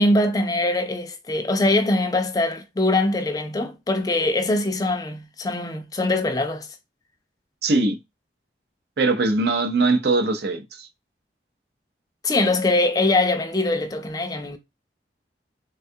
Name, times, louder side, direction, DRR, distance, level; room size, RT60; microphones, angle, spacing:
voice 1, 0.0-6.7 12.2-14.6, left 2 dB, 20° left, 0.4 m, -22 dB
voice 2, 7.6-8.0 9.0-10.9, right 3 dB, 65° right, 0.6 m, -21 dB
3.4 x 2.3 x 2.7 m
head